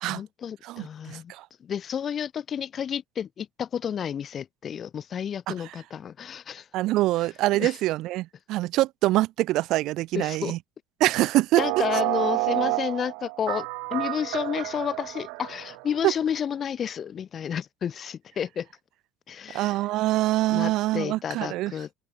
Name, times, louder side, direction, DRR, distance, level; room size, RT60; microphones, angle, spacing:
voice 1, 0.1-1.3 1.6-6.7 7.2-7.3 7.5-7.8 10.1-10.5 11.6-18.7 19.3-19.8 20.5-21.9, left 8 dB, 30° left, 2.2 m, -31 dB
voice 2, 0.6-1.5 5.5-5.6 6.7-10.6 11.0-11.6 16.0-16.1 19.5-21.7, right 17 dB, 55° right, 0.6 m, -24 dB
sound 1, 11.6-16.1, right 38 dB, 80° right, 2.2 m, -29 dB
cardioid pair, 155°, 0 cm